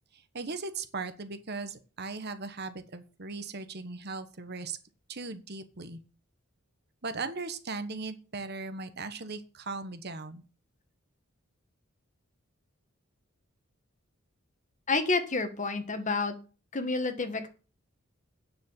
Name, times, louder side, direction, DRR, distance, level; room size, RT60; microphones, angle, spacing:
voice 1, 0.1-4.8 5.1-6.0 7.0-10.4, right 3 dB, 50° right, 10 dB, 1.2 m, -38 dB
voice 2, 14.9-16.3 16.7-17.5, left 3 dB, 35° left, 8 dB, 1.6 m, -29 dB
9.5 x 6.8 x 7.4 m, 0.35 s
head